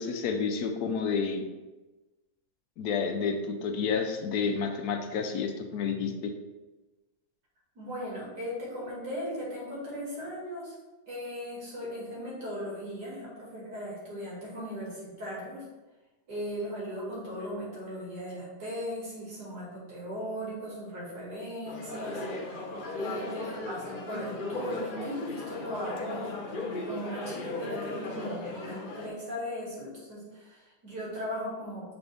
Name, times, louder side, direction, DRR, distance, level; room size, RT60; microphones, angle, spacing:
voice 1, 0.0-1.4 2.8-6.3, left 5 dB, 75° left, 5 dB, 1.1 m, -30 dB
voice 2, 7.7-10.7 11.1-15.6 16.3-22.3 22.9-26.3 26.8-32.0, equal, 80° right, -6 dB, 2.8 m, -38 dB
sound 1, 21.7-29.1, left 2 dB, 45° left, 0.7 m, -37 dB
6.9 x 4.1 x 3.4 m, 1.1 s
omnidirectional pair, 1.7 m